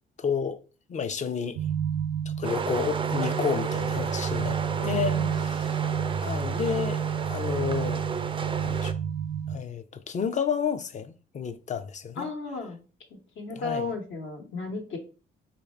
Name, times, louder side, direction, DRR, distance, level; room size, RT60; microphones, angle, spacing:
voice 1, 0.2-0.6 0.9-1.6 2.3-5.8 6.2-7.0 7.3-8.0 8.6-8.9 9.5-12.3 13.5-13.9, left 6 dB, 40° left, 0.5 m, -31 dB
sound 1, 1.6-9.6, right 8 dB, 85° right, 0.5 m, -30 dB
sound 2, 2.4-8.9, right 5 dB, 25° right, 0.3 m, -33 dB
voice 2, 4.8-5.3 12.2-12.8 13.1-15.0, left 3 dB, 75° left, 1.2 m, -34 dB
3.2 x 2.6 x 4.3 m
cardioid pair, 90°, 20 cm